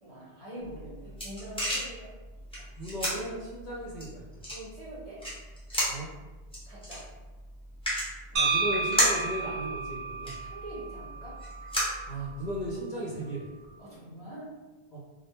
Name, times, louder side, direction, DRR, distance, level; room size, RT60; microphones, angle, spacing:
voice 1, 0.0-2.1 2.6-2.7 3.1-3.4 4.5-5.2 6.7-7.1 10.4-11.4 13.8-14.5, right 1 dB, 40° right, -9 dB, 0.8 m, -44 dB
sound 1, 0.6-12.7, equal, 5° left, 0.6 m, -34 dB
voice 2, 2.8-4.2 5.9-6.1 8.3-10.3 12.1-13.5 14.9-15.0, right 1 dB, 60° left, -6 dB, 0.6 m, -36 dB
sound 2, 8.4-12.4, right 3 dB, 60° right, 0.3 m, -32 dB
2.1 x 2.1 x 2.9 m, 1.2 s
omnidirectional pair, 1.1 m